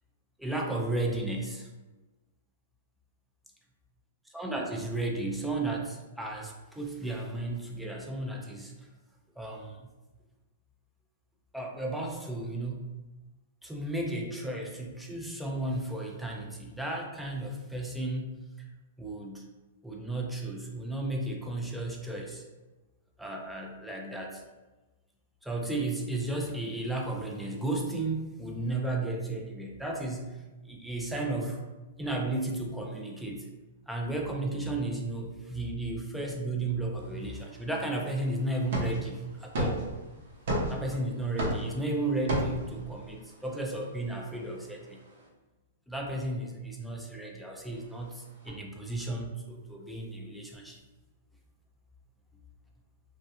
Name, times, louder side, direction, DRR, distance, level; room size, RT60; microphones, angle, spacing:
voice 1, 0.4-1.7 4.3-8.7 9.4-9.9 11.5-12.9 13.6-18.4 19.0-19.4 19.8-22.4 23.2-24.4 25.4-30.3 30.6-31.6 32.0-33.5 33.9-39.8 40.7-45.0 45.9-50.8, right 2 dB, ahead, 0 dB, 0.3 m, -34 dB
sound 1, 37.0-45.3 47.7-48.5, right 1 dB, 60° right, 0.7 m, -37 dB
2.4 x 2.1 x 2.8 m, 1.1 s
hypercardioid pair, 145°, 0 cm